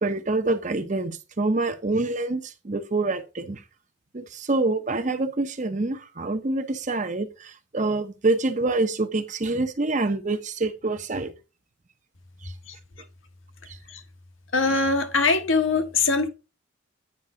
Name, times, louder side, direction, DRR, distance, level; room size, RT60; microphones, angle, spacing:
voice 1, 0.0-3.6 4.1-11.3 12.4-12.5 13.7-13.8, right 2 dB, 35° right, 0.7 m, -26 dB
voice 2, 14.5-16.3, left 4 dB, 75° left, 1.3 m, -22 dB
9.0 x 5.3 x 3.6 m
head